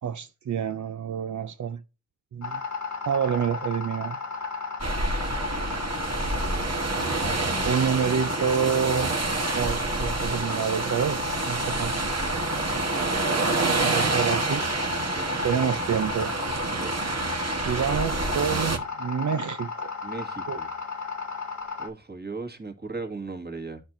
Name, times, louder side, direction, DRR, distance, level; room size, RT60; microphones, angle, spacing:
voice 1, 0.0-1.8 2.3-2.6 3.1-4.2 7.6-9.1 9.5-12.0 13.6-14.7 15.4-16.3 17.7-19.9 20.5-20.6, right 7 dB, 80° right, 0.5 m, -28 dB
sound 1, 2.4-21.9, left 5 dB, 85° left, 1.5 m, -34 dB
sound 2, 4.8-18.8, right 3 dB, 60° right, 1.4 m, -28 dB
voice 2, 15.1-15.5 16.8-16.9 20.0-20.7 21.8-23.8, right 3 dB, 35° right, 1.8 m, -37 dB
12.0 x 4.4 x 2.5 m
cardioid pair, 40°, 29 cm